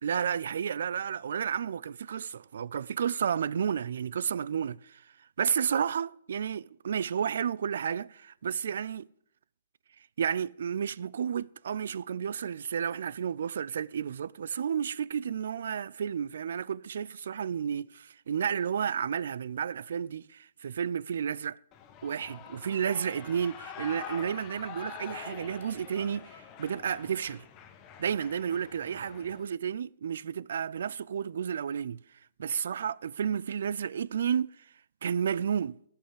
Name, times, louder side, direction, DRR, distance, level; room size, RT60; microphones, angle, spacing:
voice 1, 0.0-5.0 5.4-9.1 10.2-17.9 18.3-21.6 22.0-27.4 28.0-32.0 32.4-34.7 35.0-35.8, right 8 dB, 65° right, 0.4 m, -32 dB
Shout / Cheering, 21.7-29.4, left 8 dB, 20° left, 0.9 m, -46 dB
14.5 x 5.6 x 8.5 m
hypercardioid pair, 165°, 0 cm